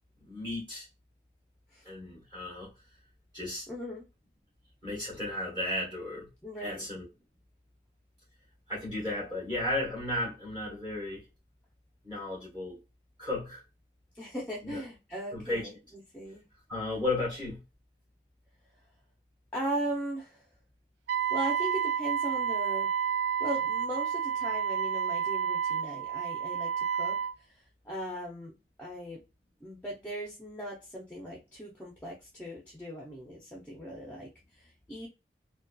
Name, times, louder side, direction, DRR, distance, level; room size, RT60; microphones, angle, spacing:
voice 1, 0.3-0.9 1.8-2.7 3.3-3.6 4.8-6.3 6.6-7.1 8.7-11.2 12.0-12.8 13.2-13.6 14.6-14.8 15.3-15.6 16.7-17.6, left 2 dB, 25° right, 1.0 m, -34 dB
voice 2, 3.7-4.1 6.4-6.9 14.1-16.4 19.5-20.4 21.3-22.9 23.4-29.2 29.6-35.1, right 1 dB, 10° left, 0.5 m, -38 dB
Wind instrument woodwind instrument, 21.1-27.3, right 8 dB, 75° right, 0.4 m, -30 dB
2.7 x 2.2 x 2.2 m
head